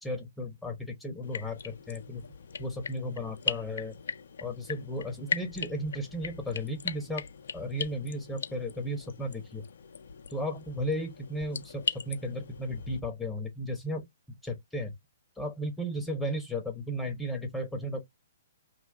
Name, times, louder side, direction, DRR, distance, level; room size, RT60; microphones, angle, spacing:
voice 1, 0.0-2.2 2.6-4.0 4.4-7.2 7.5-9.6 10.3-14.1 14.4-14.9 15.4-18.1, equal, 5° left, 1.0 m, -35 dB
sound 1, 1.2-13.0, left 6 dB, 65° left, 0.4 m, -39 dB
2.8 x 2.3 x 2.3 m
figure-of-eight pair, 120°, 0 cm